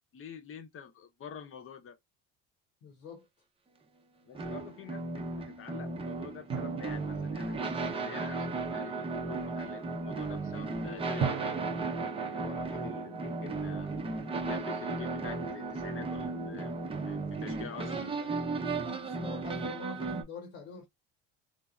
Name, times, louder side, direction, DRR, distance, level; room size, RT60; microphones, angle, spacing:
voice 1, 0.1-2.0 4.3-7.6 7.9-11.5 12.1-14.0 14.4-16.7 17.1-18.3, left 7 dB, 45° left, 0.8 m, -46 dB
voice 2, 2.8-3.3 17.7-18.0 18.8-20.9, left 3 dB, 80° left, 1.0 m, -45 dB
sound 1, 4.3-20.2, right 3 dB, 20° right, 0.6 m, -35 dB
sound 2, 6.5-8.8 11.2-14.1, right 7 dB, 75° right, 0.8 m, -40 dB
3.2 x 2.0 x 2.4 m
supercardioid pair, 85°, 31 cm